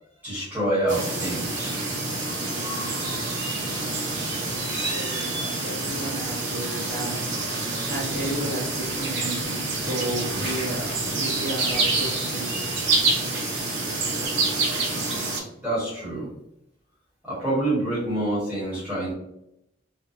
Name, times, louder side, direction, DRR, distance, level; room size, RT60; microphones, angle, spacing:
voice 1, 0.2-1.8 15.6-16.3 17.2-19.1, right 1 dB, 10° right, 1.2 m, -26 dB
sound 1, 0.9-15.4, right 3 dB, 70° right, 0.6 m, -27 dB
voice 2, 3.0-14.3, right 1 dB, 40° right, 0.8 m, -34 dB
2.6 x 2.2 x 2.4 m
head